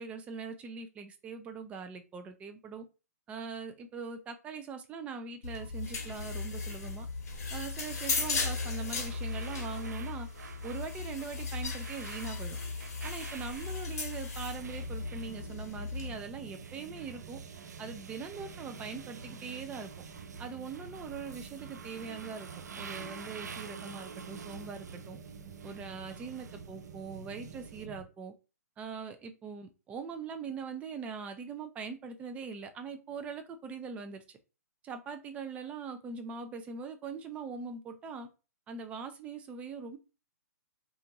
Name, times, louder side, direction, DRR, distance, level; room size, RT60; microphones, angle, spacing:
voice 1, 0.0-2.9 3.3-7.1 7.5-10.3 10.6-12.6 13.0-17.4 17.8-19.9 20.4-22.5 22.8-25.2 25.6-28.3 28.8-34.2 34.8-38.3 38.7-40.0, right 5 dB, 15° right, 0.3 m, -42 dB
sound 1, 5.4-16.1, left 4 dB, 65° left, 0.8 m, -36 dB
sound 2, 8.7-27.8, right 5 dB, 80° right, 0.4 m, -50 dB
sound 3, 14.6-28.0, right 5 dB, 65° right, 0.9 m, -48 dB
2.5 x 2.5 x 2.9 m
hypercardioid pair, 135°, 9 cm